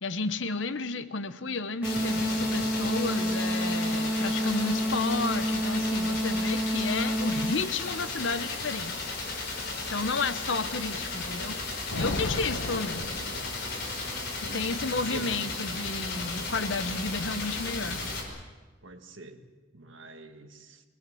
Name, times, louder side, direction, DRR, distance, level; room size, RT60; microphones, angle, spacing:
voice 1, 0.0-9.0 9.9-11.6 11.9-13.1 14.4-18.0, left 3 dB, 70° left, 12 dB, 1.0 m, -32 dB
sound 1, 1.8-18.2, left 3 dB, 50° left, 5.2 m, -35 dB
sound 2, 1.8-7.8, equal, 10° right, 1.9 m, -29 dB
Thunder, 11.9-14.1, left 2 dB, 90° left, 1.4 m, -34 dB
voice 2, 14.5-15.3 18.8-19.4 19.7-20.8, right 2 dB, 75° right, 6 dB, 1.7 m, -45 dB
23.0 x 19.0 x 7.9 m, 1.3 s
head